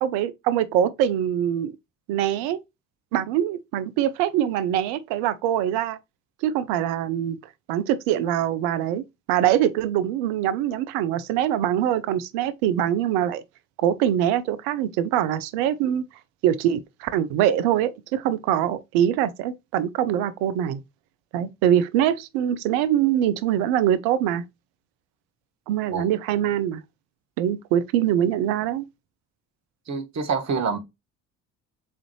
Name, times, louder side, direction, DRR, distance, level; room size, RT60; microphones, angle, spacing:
voice 1, 0.0-1.7 2.1-2.6 3.1-6.0 6.4-7.4 7.7-13.4 13.8-16.0 16.4-20.8 21.3-24.4 25.7-26.8 27.4-28.8, right 10 dB, 75° right, 0.6 m, -23 dB
voice 2, 29.9-30.8, right 5 dB, 40° right, 1.1 m, -26 dB
3.7 x 3.2 x 3.0 m
hypercardioid pair, 55°, 40 cm